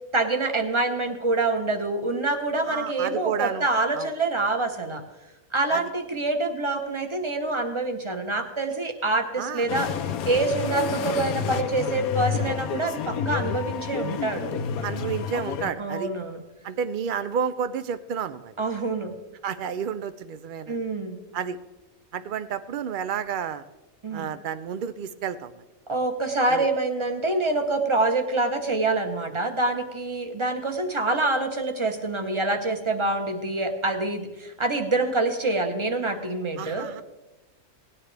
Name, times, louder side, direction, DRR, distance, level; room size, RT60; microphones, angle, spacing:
voice 1, 0.1-5.0 5.5-9.9 10.2-14.6 15.8-16.4 18.6-19.1 20.7-21.2 24.0-24.3 25.9-36.9, right 2 dB, 25° right, 5 dB, 0.9 m, -26 dB
voice 2, 2.6-3.7 3.9-4.1 5.7-5.8 9.4-9.7 14.8-16.1 16.6-18.5 19.4-20.8 21.3-21.6 22.1-23.6 24.1-25.6 26.5-26.7 31.1-31.2 36.6-37.0, right 7 dB, 75° right, 13 dB, 0.4 m, -31 dB
sound 1, 9.7-15.7, left 8 dB, 90° left, 1.1 m, -29 dB
18.0 x 10.0 x 3.3 m, 1.1 s
omnidirectional pair, 1.5 m